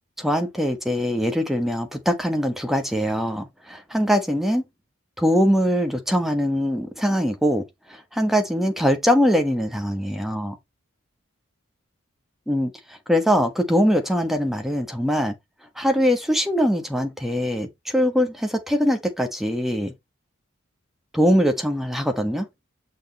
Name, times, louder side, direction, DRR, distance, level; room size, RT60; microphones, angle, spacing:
voice 1, 0.2-4.6 5.2-7.6 8.2-10.5 12.5-12.7 13.1-15.3 15.8-17.7 17.9-19.9 21.1-22.5, equal, ahead, 1.3 m, -22 dB
6.4 x 6.4 x 3.0 m
head